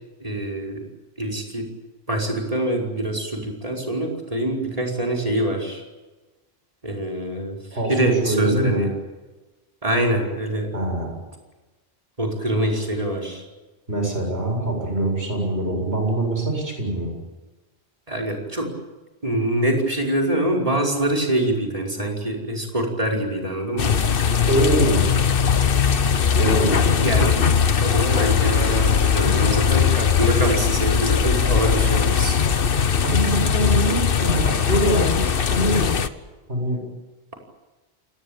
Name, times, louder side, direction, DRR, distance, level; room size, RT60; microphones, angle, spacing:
voice 1, 0.2-0.8 1.2-1.7 2.1-5.8 6.8-7.6 7.9-8.9 9.8-10.7 12.2-13.4 18.1-18.7 19.2-24.0 26.9-27.4 27.8-32.4, right 1 dB, 35° right, 0 dB, 5.4 m, -24 dB
voice 2, 8.2-8.8 10.7-11.1 13.9-17.1 24.4-25.1 26.4-26.8 33.0-36.1 36.5-36.8, right 1 dB, 85° right, 2 dB, 7.9 m, -23 dB
sound 1, 23.8-36.1, left 7 dB, 65° left, 1.2 m, -20 dB
29.0 x 18.5 x 8.9 m, 1.2 s
omnidirectional pair, 1.1 m